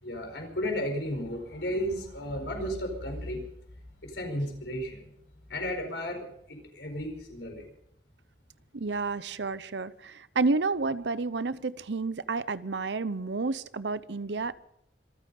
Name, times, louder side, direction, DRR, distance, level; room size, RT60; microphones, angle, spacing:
voice 1, 0.0-3.4 4.0-5.1 5.5-7.6, equal, 85° left, 3 dB, 4.7 m, -34 dB
voice 2, 8.7-14.5, right 3 dB, 85° right, 16 dB, 0.8 m, -30 dB
26.0 x 9.4 x 5.4 m, 0.74 s
head